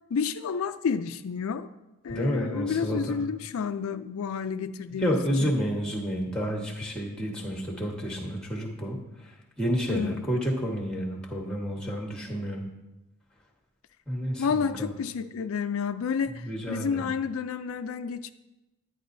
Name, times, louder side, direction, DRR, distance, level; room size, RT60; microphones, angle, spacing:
voice 1, 0.1-1.7 2.0-5.5 9.9-10.3 14.4-18.3, left 6 dB, 75° left, 10 dB, 0.4 m, -30 dB
voice 2, 2.1-3.2 5.0-9.3 9.6-12.6 14.1-14.9 16.3-17.0, equal, 5° left, 0 dB, 1.3 m, -30 dB
10.0 x 10.0 x 2.6 m, 0.98 s
head